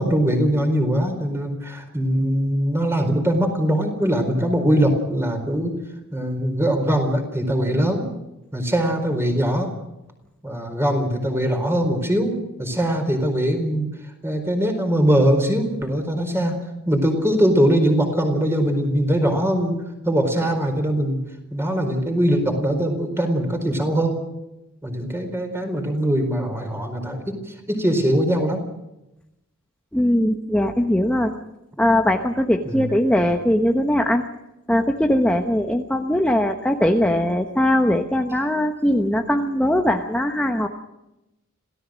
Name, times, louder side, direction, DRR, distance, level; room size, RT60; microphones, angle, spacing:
voice 1, 0.0-5.8 6.1-8.0 8.5-9.7 10.4-12.3 12.6-13.9 14.2-16.6 16.9-21.2 21.5-24.2 24.8-28.6 32.7-32.8, equal, 10° right, 5 dB, 4.4 m, -21 dB
voice 2, 29.9-31.3 31.8-34.2 34.7-40.7, left 1 dB, 5° left, 4 dB, 1.1 m, -20 dB
27.0 x 17.5 x 6.4 m, 0.93 s
head